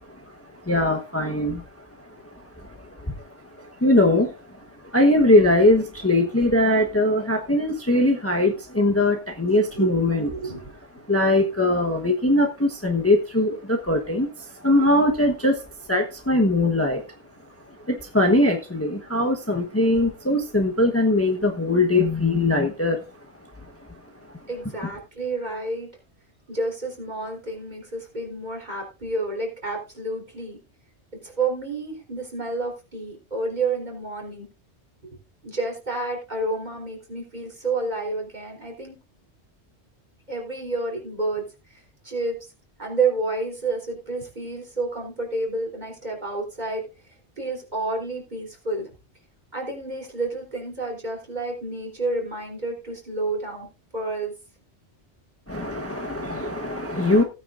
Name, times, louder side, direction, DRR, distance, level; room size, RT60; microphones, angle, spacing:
voice 1, 0.7-1.6 2.6-2.7 3.0-3.1 3.6-4.4 4.9-10.5 11.1-14.3 14.6-15.6 15.9-17.0 17.9-23.0 55.5-57.2, left 1 dB, 15° left, 1.1 m, -21 dB
voice 2, 9.4-10.6 24.5-25.9 26.5-30.6 31.2-34.5 35.4-38.9 40.3-41.4 42.0-42.4 42.8-46.9 47.4-48.9 49.5-53.7 53.9-54.3, right 3 dB, 40° right, 3.9 m, -29 dB
16.5 x 9.3 x 2.6 m
omnidirectional pair, 1.2 m